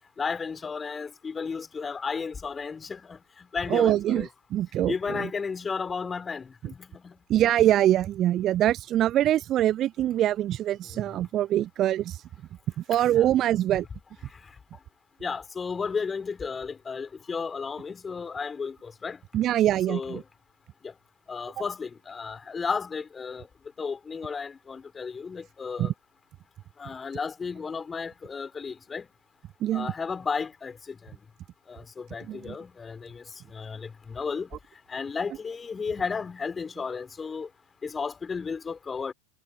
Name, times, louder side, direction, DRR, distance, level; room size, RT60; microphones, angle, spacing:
voice 1, 0.2-4.3 4.8-7.1 13.1-13.3 15.2-19.2 19.9-20.2 20.8-20.9 21.3-23.5 23.8-25.9 26.8-29.1 29.7-31.1 31.7-33.2 33.5-34.5 34.9-37.5 37.8-39.1, left 5 dB, 15° left, 2.8 m, -33 dB
voice 2, 3.7-4.9 6.6-6.7 7.3-12.2 12.9-13.8 19.3-20.2 25.8-25.9 29.6-29.9 32.3-32.4, right 12 dB, 30° right, 0.6 m, -24 dB
figure-of-eight pair, 90°, 0 cm